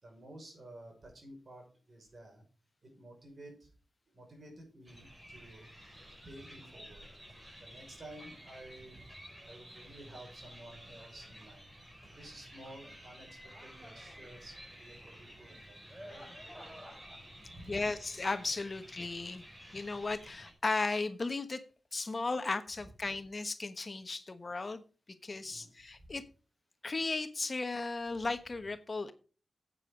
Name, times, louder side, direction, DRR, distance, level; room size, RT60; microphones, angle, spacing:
voice 1, 0.0-2.4 2.8-3.7 4.1-7.3 7.6-9.1 9.4-11.7 12.1-16.2 16.5-16.6 17.2-17.8 25.4-25.7 26.0-26.2, right 1 dB, 55° right, 2 dB, 6.0 m, -52 dB
sound 1, 4.9-20.5, equal, 15° right, 5.0 m, -52 dB
voice 2, 17.7-19.4 19.7-21.6 21.9-24.8 25.2-26.2 26.8-29.1, left 3 dB, 45° left, 10 dB, 1.1 m, -35 dB
9.2 x 8.7 x 5.2 m, 0.37 s
cardioid pair, 55°, 0 cm